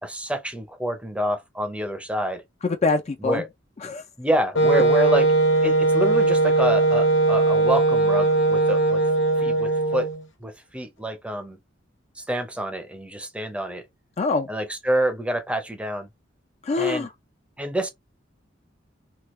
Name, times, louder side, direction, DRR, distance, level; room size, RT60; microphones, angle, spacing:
voice 1, 0.0-2.4 3.2-3.5 4.2-5.3 5.6-9.0 9.4-10.1 10.4-11.6 12.2-13.8 14.5-16.1 16.8-17.1 17.6-17.9, right 1 dB, 5° right, 0.6 m, -27 dB
voice 2, 2.6-3.4 3.8-4.0 14.2-14.5 16.6-17.1, left 4 dB, 35° left, 0.4 m, -24 dB
Wind instrument woodwind instrument, 4.5-10.2, right 2 dB, 65° left, 0.9 m, -19 dB
3.0 x 2.3 x 3.1 m
head